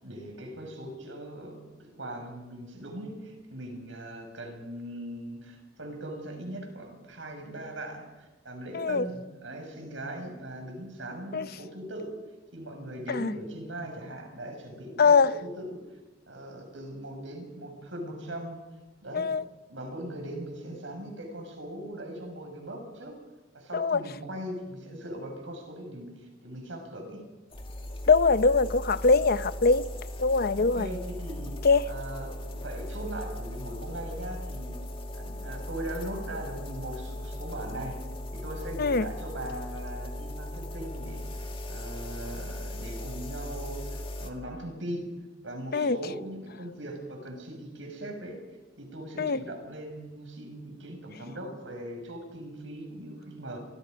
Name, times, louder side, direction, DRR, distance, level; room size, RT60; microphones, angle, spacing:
voice 1, 0.0-12.2 12.5-16.0 16.3-18.7 19.0-19.3 19.7-23.2 23.5-27.3 30.5-34.9 35.1-38.0 38.3-45.1 45.4-48.4 48.8-53.6, right 1 dB, 85° right, 6.6 m, -40 dB
sound 1, 27.5-44.3, left 1 dB, 30° left, 2.3 m, -38 dB
voice 2, 28.1-29.9 30.2-30.9 31.6-31.8 38.8-39.0 45.7-46.0 49.2-49.4, left 4 dB, 55° left, 0.7 m, -22 dB
29.5 x 24.5 x 5.3 m
head